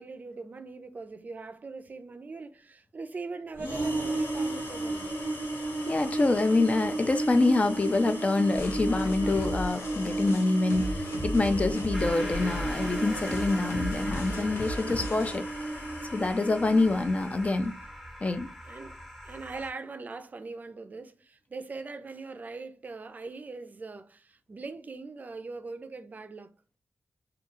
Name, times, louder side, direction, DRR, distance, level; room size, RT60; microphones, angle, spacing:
voice 1, 0.0-5.1 18.7-19.0 19.2-26.5, right 3 dB, 40° right, 0.4 m, -41 dB
sound 1, 3.6-17.5, right 2 dB, 65° left, 1.1 m, -34 dB
voice 2, 5.9-15.5 16.1-17.7 18.2-18.5, left 2 dB, 35° left, 0.3 m, -26 dB
sound 2, 8.5-15.4, left 1 dB, 90° left, 0.7 m, -36 dB
sound 3, 11.9-19.7, equal, 5° left, 0.8 m, -41 dB
2.3 x 2.3 x 2.9 m
cardioid pair, 55°, 4 cm